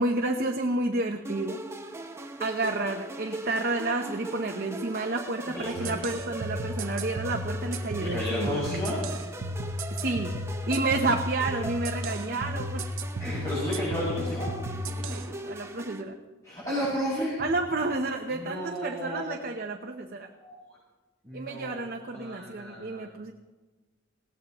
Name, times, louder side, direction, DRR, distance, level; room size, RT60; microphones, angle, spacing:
voice 1, 0.0-1.6 2.4-8.7 9.9-10.4 10.7-12.9 14.7-16.2 17.4-20.3 21.3-23.3, right 2 dB, 45° right, 3 dB, 0.8 m, -30 dB
sound 1, 1.2-16.0, right 2 dB, 15° right, 0.8 m, -40 dB
voice 2, 5.5-6.0 8.0-9.0 13.2-14.5 16.4-17.4 18.3-19.2 20.4-20.6 21.2-21.8 22.1-23.1, equal, 15° left, -11 dB, 6.0 m, -32 dB
sound 2, 5.8-15.2, equal, 85° right, 0.9 m, -34 dB
21.0 x 16.5 x 3.0 m, 1.2 s
head